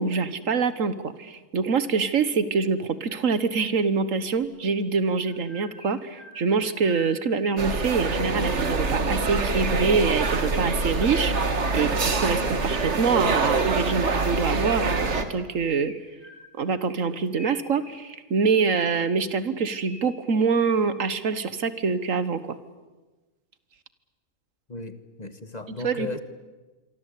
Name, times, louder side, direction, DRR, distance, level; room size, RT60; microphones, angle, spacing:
voice 1, 0.0-15.9 16.6-22.6 25.8-26.1, right 5 dB, 80° right, 13 dB, 1.7 m, -25 dB
Chirp tweet, 4.4-4.5 5.2-7.8 9.9-12.6 13.7-15.3 15.8-16.7 17.3-19.1 19.6-21.1, left 1 dB, 90° left, 6.0 m, -47 dB
sound 1, 7.6-15.2, right 3 dB, 60° right, 2.1 m, -25 dB
voice 2, 24.7-26.2, left 3 dB, 30° left, 10 dB, 1.5 m, -35 dB
27.0 x 24.0 x 8.5 m, 1.2 s
omnidirectional pair, 1.4 m